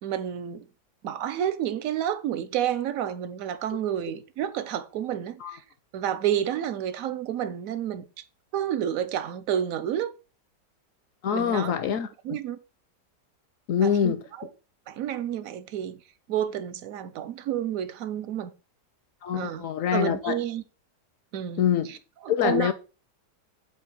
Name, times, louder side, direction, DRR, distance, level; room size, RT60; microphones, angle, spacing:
voice 1, 0.0-0.7 1.0-5.6 5.9-8.1 8.5-10.1 11.3-11.8 12.2-12.6 13.8-14.5 14.9-16.0 16.3-18.5 19.3-19.7 19.9-20.6 21.3-22.0 22.2-22.7, right 10 dB, 70° right, 0.9 m, -30 dB
voice 2, 11.2-12.4 13.7-14.2 19.2-20.4 21.6-21.9 22.3-22.7, left 8 dB, 70° left, 0.8 m, -25 dB
7.8 x 2.7 x 5.2 m
omnidirectional pair, 1.8 m